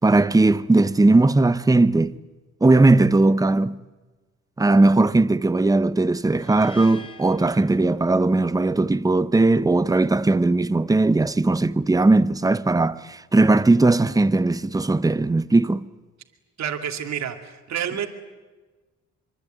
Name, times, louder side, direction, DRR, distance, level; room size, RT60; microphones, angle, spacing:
voice 1, 0.0-2.1 2.6-3.8 4.6-15.9, right 2 dB, 10° right, 0.9 m, -18 dB
sound 1, 6.3-8.5, left 2 dB, 15° left, 2.3 m, -46 dB
voice 2, 16.6-18.1, right 9 dB, 65° right, 2.5 m, -29 dB
24.5 x 24.5 x 9.1 m
cardioid pair, 90°, 30 cm